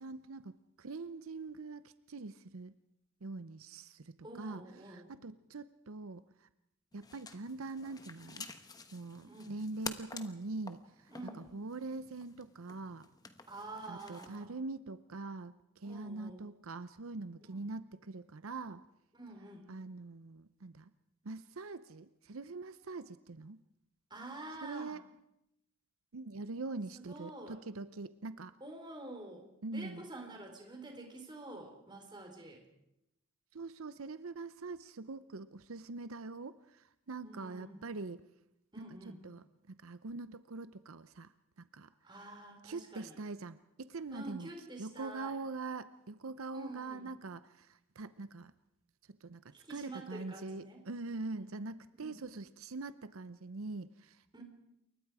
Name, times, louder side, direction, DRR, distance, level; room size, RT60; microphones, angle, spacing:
voice 1, 0.0-2.7 3.2-6.5 6.9-8.5 8.9-11.1 11.4-13.1 13.9-18.8 19.7-20.9 21.2-23.6 24.6-25.0 26.1-28.5 29.6-30.0 33.5-38.2 39.2-41.9 42.6-44.5 44.8-48.5 49.2-54.2, right 3 dB, 85° right, 13 dB, 0.7 m, -43 dB
voice 2, 4.2-5.1 9.2-9.5 11.1-11.5 13.5-14.5 15.8-16.5 17.5-17.6 19.1-19.7 24.1-24.9 26.9-27.6 28.6-32.6 37.2-37.8 38.7-39.2 42.0-43.1 44.1-45.4 46.5-47.1 49.5-50.8 51.3-51.5 52.0-52.2 54.3-54.4, right 2 dB, 20° right, 3 dB, 4.2 m, -48 dB
sound 1, 6.9-14.5, left 4 dB, 20° left, 1.2 m, -50 dB
28.5 x 23.0 x 4.9 m, 0.84 s
head